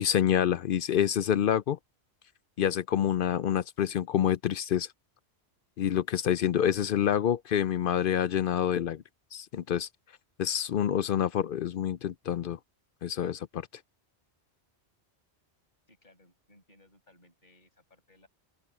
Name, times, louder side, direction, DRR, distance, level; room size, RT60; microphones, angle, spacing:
voice 1, 0.0-1.8 2.6-4.9 5.8-9.0 9.3-9.9 10.4-12.6 13.0-13.7, left 10 dB, 60° left, 0.6 m, -27 dB
voice 2, 15.9-18.3, left 2 dB, 40° left, 6.3 m, -62 dB
open air
omnidirectional pair, 1.2 m